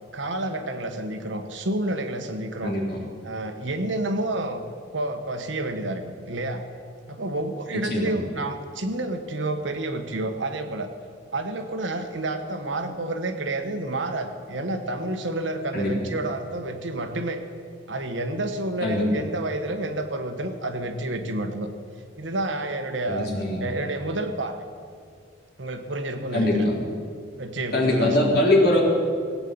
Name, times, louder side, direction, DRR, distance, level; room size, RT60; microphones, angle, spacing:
voice 1, 0.1-2.8 3.2-4.7 4.9-6.6 7.1-10.9 11.3-17.4 17.9-21.7 22.2-23.3 23.6-24.6 25.6-26.7 27.4-28.4, right 2 dB, 80° right, 6 dB, 1.4 m, -29 dB
voice 2, 2.6-3.0 7.7-8.1 15.7-15.9 18.8-19.1 23.1-23.6 26.3-26.7 27.7-28.8, left 1 dB, 55° left, -4 dB, 4.0 m, -22 dB
18.0 x 8.4 x 8.7 m, 2.2 s
head